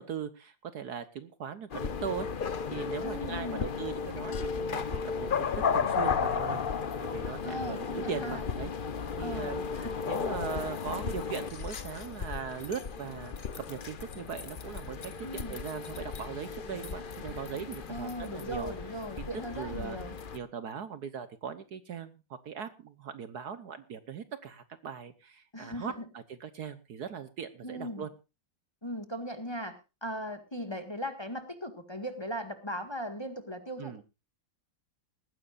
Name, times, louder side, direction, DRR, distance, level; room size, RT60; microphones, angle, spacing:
voice 1, 0.0-5.5 5.7-6.6 7.0-8.7 9.2-9.7 10.1-18.7 19.2-19.3 19.5-20.0 20.3-28.1 33.8-34.0, right 7 dB, 60° right, 12 dB, 1.4 m, -40 dB
sound 1, 1.7-20.4, left 6 dB, 45° left, 0.7 m, -34 dB
voice 2, 3.0-3.7 7.4-8.4 9.2-9.9 15.2-15.5 17.9-20.1 25.5-26.0 27.6-28.0 28.8-29.7 30.0-34.0, equal, 15° left, 7 dB, 1.8 m, -38 dB
19.5 x 15.5 x 2.5 m, 0.29 s
omnidirectional pair, 2.1 m